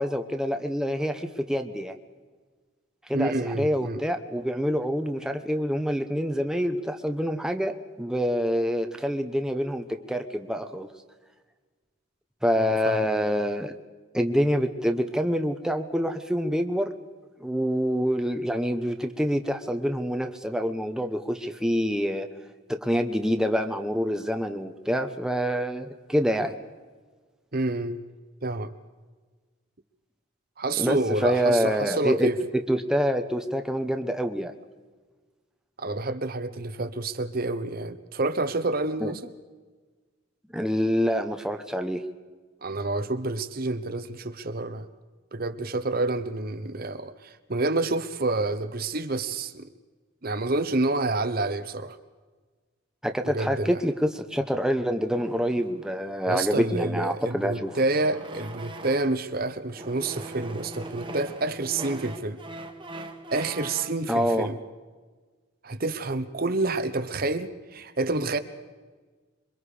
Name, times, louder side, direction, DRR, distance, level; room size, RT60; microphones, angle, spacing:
voice 1, 0.0-1.9 3.1-10.9 12.4-13.7 14.1-16.9 17.4-22.3 22.7-26.6 30.8-34.5 39.0-39.1 40.5-42.0 53.0-57.7 64.1-64.5, equal, 5° right, 1.0 m, -26 dB
voice 2, 3.1-4.0 12.6-13.0 27.5-28.0 28.4-28.7 30.6-32.4 35.8-39.3 42.6-44.9 45.3-49.7 50.2-52.0 53.2-53.7 56.3-62.4 63.3-64.6 65.6-68.4, right 2 dB, 45° right, 1.0 m, -28 dB
sound 1, 55.1-59.3 59.7-64.0, right 2 dB, 25° right, 1.6 m, -42 dB
27.0 x 24.0 x 5.1 m
head